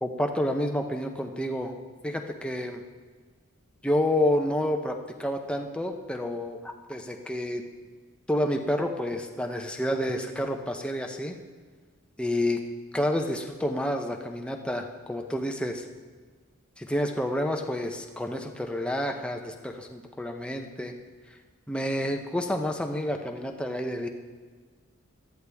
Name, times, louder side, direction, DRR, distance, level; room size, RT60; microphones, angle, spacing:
voice 1, 0.0-1.8 2.0-2.8 3.8-7.6 8.3-11.3 12.2-12.6 12.9-15.8 16.8-20.9 21.3-21.4 21.7-24.1, left 1 dB, 5° left, 3 dB, 0.8 m, -29 dB
18.0 x 13.0 x 3.5 m, 1.5 s
head